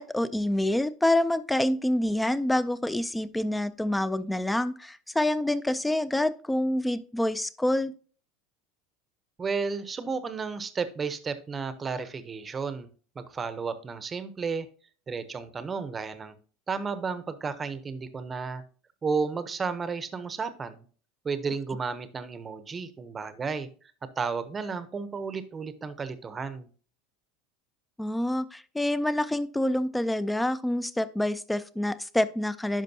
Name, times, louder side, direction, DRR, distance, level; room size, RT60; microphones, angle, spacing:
voice 1, 0.0-7.9 28.0-32.8, left 1 dB, 5° left, 15 dB, 0.3 m, -27 dB
voice 2, 9.4-12.9 13.2-14.7 15.1-16.4 16.7-18.6 19.0-20.9 21.2-23.7 24.2-26.7, right 5 dB, 20° right, 12 dB, 0.7 m, -32 dB
10.5 x 5.3 x 2.7 m, 0.41 s
supercardioid pair, 145°, 0 cm